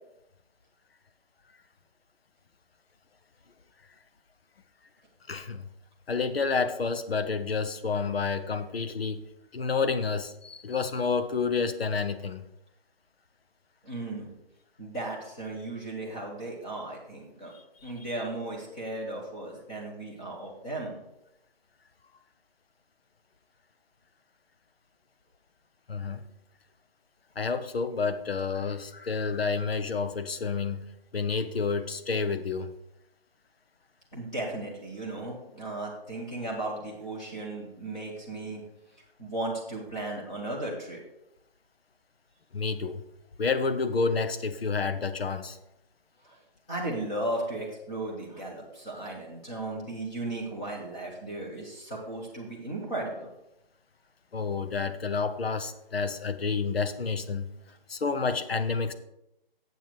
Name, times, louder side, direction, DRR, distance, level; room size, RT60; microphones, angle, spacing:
voice 1, 5.3-5.7 6.1-9.2 9.5-12.4 17.5-17.9 25.9-26.2 27.4-30.8 31.1-32.7 42.5-43.0 43.4-45.6 54.3-57.5 57.9-58.9, left 4 dB, 80° left, 10 dB, 0.9 m, -29 dB
voice 2, 13.8-14.3 14.8-17.5 17.8-21.0 34.1-38.6 39.2-41.0 46.2-46.4 46.7-53.3, right 2 dB, 5° left, -5 dB, 0.8 m, -35 dB
8.0 x 7.0 x 4.6 m, 0.86 s
hypercardioid pair, 165°, 30 cm